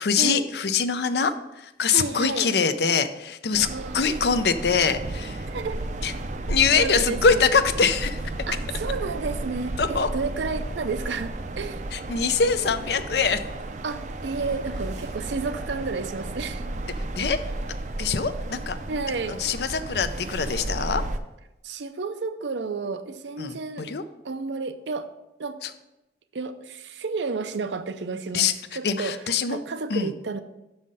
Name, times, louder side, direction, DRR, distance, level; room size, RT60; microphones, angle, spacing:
voice 1, 0.0-5.5 6.0-6.1 6.5-8.2 9.8-10.1 11.9-13.4 17.1-17.4 18.0-18.8 19.3-21.0 23.4-24.0 25.6-25.7 28.3-28.5 28.8-29.6 29.9-30.1, left 5 dB, 65° left, 11 dB, 0.5 m, -23 dB
voice 2, 1.9-2.5 3.7-4.1 5.5-5.8 6.8-7.4 8.5-11.8 13.8-16.7 18.9-19.4 21.6-23.9 24.2-25.1 25.4-25.6 26.3-29.1 29.5-30.4, right 4 dB, 85° right, 10 dB, 0.6 m, -31 dB
sound 1, 3.5-21.2, right 2 dB, 40° right, 0.5 m, -33 dB
6.3 x 5.7 x 5.4 m, 0.94 s
head